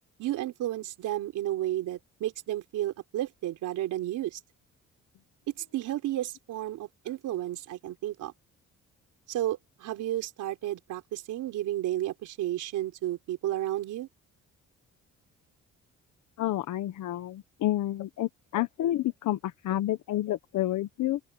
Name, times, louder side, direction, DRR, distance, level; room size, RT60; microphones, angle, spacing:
voice 1, 0.2-4.4 5.7-8.3 9.3-14.1, right 13 dB, 85° right, 4.3 m, -32 dB
voice 2, 16.4-21.2, left 14 dB, 75° left, 1.2 m, -29 dB
open air
cardioid pair, 90°, 30 cm